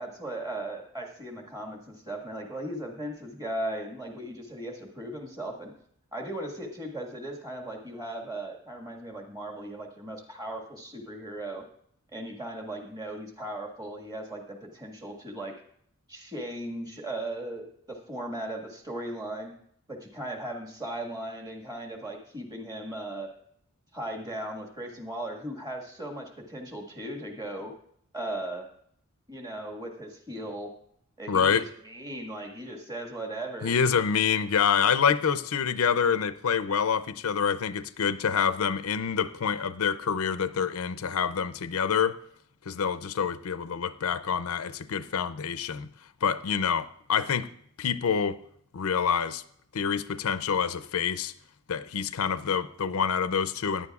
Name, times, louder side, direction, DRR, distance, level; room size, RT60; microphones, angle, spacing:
voice 1, 0.0-5.7 6.1-11.6 12.1-15.5 16.1-19.5 19.9-23.3 23.9-27.7 28.1-28.7 29.3-30.7 31.2-33.7, right 1 dB, 20° right, 1.6 m, -37 dB
voice 2, 31.3-31.7 33.6-42.2 42.7-45.9 46.2-47.5 47.8-48.4 48.7-49.4 49.7-51.3 51.7-53.9, left 7 dB, 85° left, 0.5 m, -27 dB
16.5 x 10.0 x 2.4 m
head